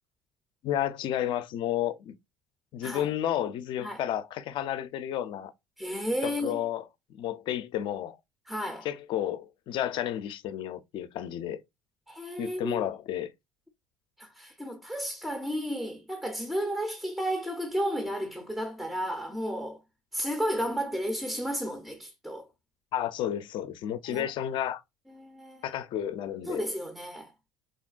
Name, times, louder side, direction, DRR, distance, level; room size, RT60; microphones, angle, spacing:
voice 1, 0.6-2.2 2.7-5.5 6.2-6.8 7.1-8.2 8.8-11.6 12.4-13.3 22.9-24.8 25.6-26.6, left 11 dB, 55° left, 0.5 m, -31 dB
voice 2, 5.8-6.6 8.5-8.9 12.1-12.9 14.2-19.8 20.1-22.5 24.1-24.3 25.1-25.7 26.5-27.3, equal, ahead, 0.5 m, -33 dB
3.8 x 2.1 x 2.4 m
supercardioid pair, 105°, 10 cm